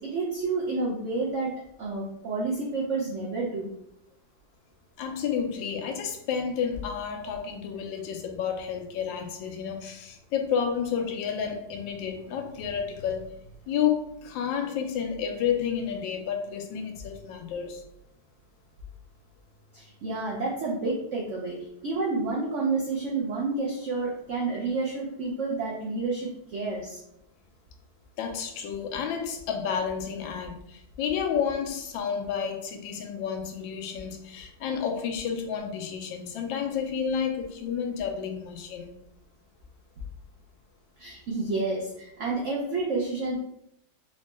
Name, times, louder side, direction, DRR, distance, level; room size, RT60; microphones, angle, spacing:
voice 1, 0.0-1.5 1.8-3.7 19.7-27.0 41.0-43.4, right 3 dB, 90° right, -3 dB, 0.6 m, -30 dB
voice 2, 5.0-13.3 13.7-17.8 28.2-39.0, left 7 dB, 90° left, 4 dB, 1.3 m, -31 dB
3.8 x 2.1 x 3.1 m, 0.78 s
omnidirectional pair, 2.0 m